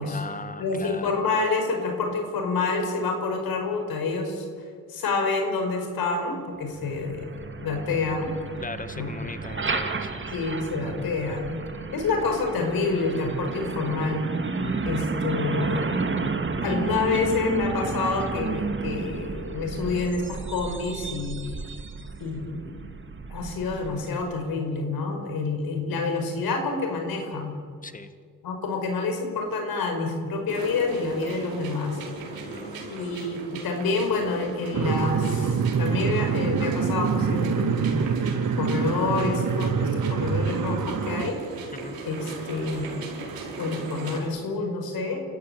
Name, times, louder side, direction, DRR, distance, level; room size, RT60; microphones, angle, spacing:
voice 1, 0.0-1.3 8.6-10.3 14.6-15.1 27.8-28.1 32.4-32.9 41.7-42.0, left 3 dB, 25° left, 10 dB, 2.0 m, -39 dB
voice 2, 0.6-4.4 4.9-7.3 7.6-8.3 8.9-9.1 10.3-11.6 11.9-14.2 14.8-15.9 16.6-21.4 22.2-22.8 23.3-27.6 28.4-32.0 32.9-37.9 38.6-41.4 42.0-43.0 43.6-45.2, left 3 dB, 80° left, 4 dB, 5.2 m, -28 dB
Truck, 6.7-24.4, right 4 dB, 35° right, 2.2 m, -32 dB
sound 1, 30.5-44.2, right 4 dB, 80° right, 5.2 m, -38 dB
sound 2, 34.7-41.3, right 6 dB, 60° right, 1.9 m, -25 dB
27.5 x 14.5 x 9.6 m, 2.1 s
cardioid pair, 70°, 35 cm